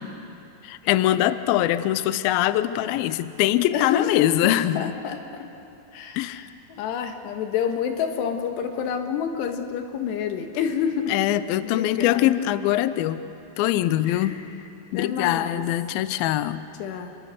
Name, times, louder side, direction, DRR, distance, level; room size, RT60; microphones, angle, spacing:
voice 1, 0.6-5.0 6.2-6.5 11.1-13.2 13.6-14.4 14.9-16.7, left 13 dB, 90° left, 13 dB, 2.1 m, -23 dB
voice 2, 3.7-4.3 4.8-5.5 5.9-11.1 11.6-12.3 14.0-14.4 14.9-15.6 16.8-17.1, left 7 dB, 75° left, 5 dB, 3.4 m, -28 dB
28.5 x 22.5 x 6.5 m, 2.7 s
omnidirectional pair, 5.1 m